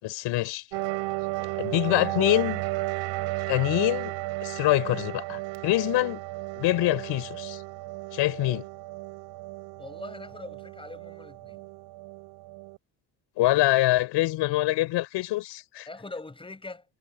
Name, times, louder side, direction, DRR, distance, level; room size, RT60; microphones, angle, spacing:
voice 1, 0.0-0.6 1.6-2.6 3.5-4.1 4.4-6.2 6.5-7.6 8.1-8.6 13.4-15.9, left 17 dB, 80° left, 5.0 m, -25 dB
sound 1, 0.7-12.8, right 20 dB, 90° right, 4.2 m, -34 dB
voice 2, 9.8-11.6 15.9-16.8, left 3 dB, 10° left, 6.4 m, -42 dB
cardioid pair, 125°, 42 cm